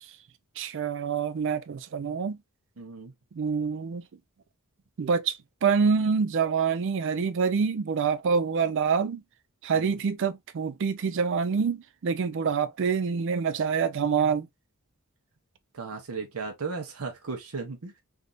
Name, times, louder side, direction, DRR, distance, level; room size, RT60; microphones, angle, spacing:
voice 1, 0.6-2.4 3.3-4.0 5.0-9.2 9.6-14.5, right 6 dB, 60° right, 0.4 m, -26 dB
voice 2, 2.8-3.1 9.7-10.0 15.7-18.0, right 4 dB, 85° right, 0.8 m, -36 dB
3.4 x 2.6 x 2.4 m
head